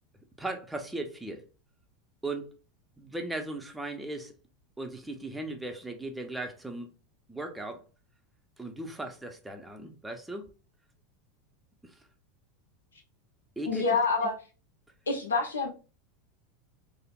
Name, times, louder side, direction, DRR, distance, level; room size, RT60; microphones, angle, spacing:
voice 1, 0.4-1.4 2.2-2.5 3.0-4.3 4.8-6.9 7.3-7.8 8.6-10.5 11.8-12.1 13.6-13.9 14.2-14.3, right 2 dB, 5° right, 0.5 m, -37 dB
voice 2, 13.7-14.3 15.1-15.7, left 4 dB, 85° left, 0.6 m, -27 dB
3.2 x 2.0 x 2.3 m
hypercardioid pair, 85°, 0 cm